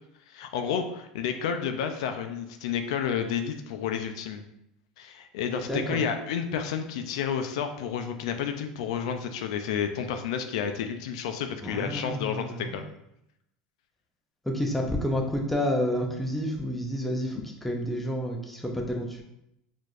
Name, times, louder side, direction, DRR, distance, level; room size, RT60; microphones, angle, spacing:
voice 1, 0.3-4.4 5.0-12.8, left 7 dB, 85° left, 6 dB, 0.3 m, -31 dB
voice 2, 5.7-6.0 11.6-12.8 14.4-19.2, equal, 5° left, 1 dB, 0.5 m, -29 dB
4.5 x 2.6 x 2.4 m, 0.82 s
supercardioid pair, 120°, 3 cm